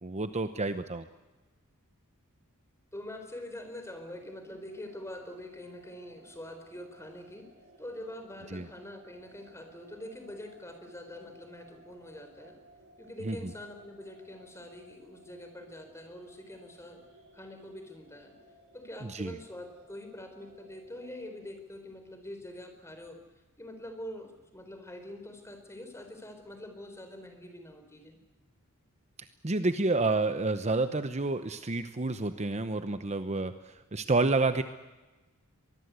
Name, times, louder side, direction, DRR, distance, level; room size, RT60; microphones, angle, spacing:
voice 1, 0.0-1.0 8.5-8.7 13.2-13.4 19.1-19.3 29.4-34.6, right 3 dB, 30° right, 10 dB, 0.9 m, -29 dB
voice 2, 2.9-7.5 7.8-12.6 13.0-17.0 17.3-18.3 18.7-23.2 23.6-28.2, left 1 dB, 15° left, 6 dB, 4.1 m, -45 dB
sound 1, 3.3-21.5, right 2 dB, 70° right, 5.3 m, -58 dB
24.0 x 21.0 x 8.2 m, 1.2 s
head